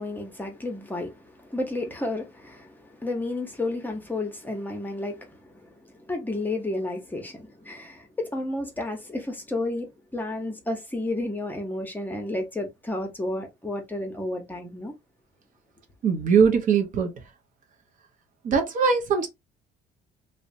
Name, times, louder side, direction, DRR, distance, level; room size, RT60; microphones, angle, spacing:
voice 1, 0.0-14.9, left 2 dB, 10° left, 0.7 m, -32 dB
voice 2, 16.0-17.1 18.4-19.3, right 6 dB, 50° right, 0.6 m, -21 dB
2.7 x 2.1 x 2.6 m
cardioid pair, 110°, 17 cm